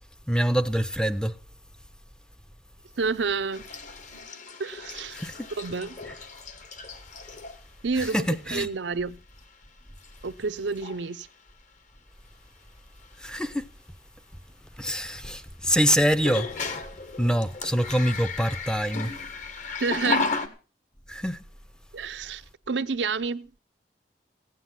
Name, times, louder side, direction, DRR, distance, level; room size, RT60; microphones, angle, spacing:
voice 1, 0.3-1.4 5.1-5.4 8.0-8.7 13.2-13.6 14.8-16.7 17.2-19.1 21.1-21.4, equal, 5° left, 0.6 m, -25 dB
voice 2, 3.0-3.6 4.6-5.2 5.6-6.0 7.8-9.2 10.2-11.3 19.8-20.3 21.9-23.5, right 4 dB, 85° right, 0.7 m, -29 dB
sound 1, 3.5-7.6 8.0-8.4 9.4-9.5 10.0-10.4 10.7-11.0 13.0-13.1 16.1-20.5, left 4 dB, 45° left, 1.5 m, -34 dB
16.0 x 9.9 x 5.8 m
head